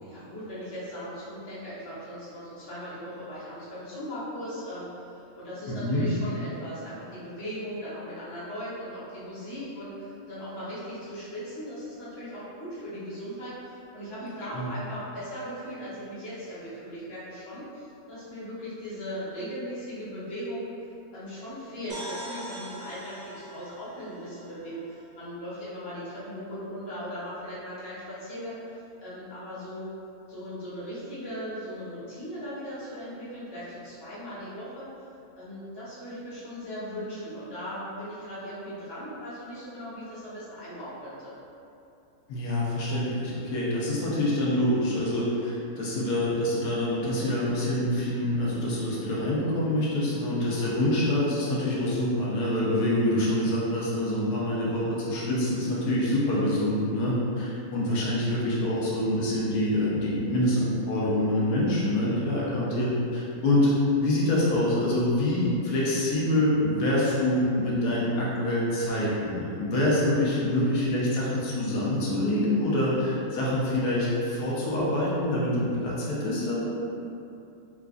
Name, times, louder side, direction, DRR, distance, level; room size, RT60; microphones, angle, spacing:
voice 1, 0.0-20.7 21.1-28.6 29.0-29.9 30.3-34.9 35.3-41.3, equal, 20° left, -11 dB, 0.8 m, -38 dB
voice 2, 5.7-6.0 14.5-14.7 42.3-63.7 64.0-76.7, left 1 dB, 80° left, -7 dB, 1.2 m, -26 dB
sound 1, 21.9-25.5, right 1 dB, 60° right, 0.4 m, -43 dB
3.8 x 2.4 x 2.5 m, 2.7 s
omnidirectional pair, 1.6 m